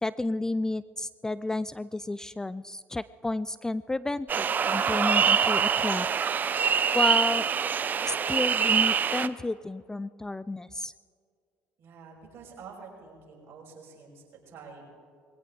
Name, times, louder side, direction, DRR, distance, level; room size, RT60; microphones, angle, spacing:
voice 1, 0.0-6.1 6.9-7.5 8.0-10.9, left 2 dB, 10° left, 17 dB, 0.3 m, -31 dB
sound 1, 4.3-9.3, right 7 dB, 40° right, 0.6 m, -25 dB
voice 2, 11.8-14.9, right 5 dB, 55° right, -1 dB, 5.6 m, -48 dB
21.5 x 17.0 x 3.8 m, 2.2 s
hypercardioid pair, 70°, 5 cm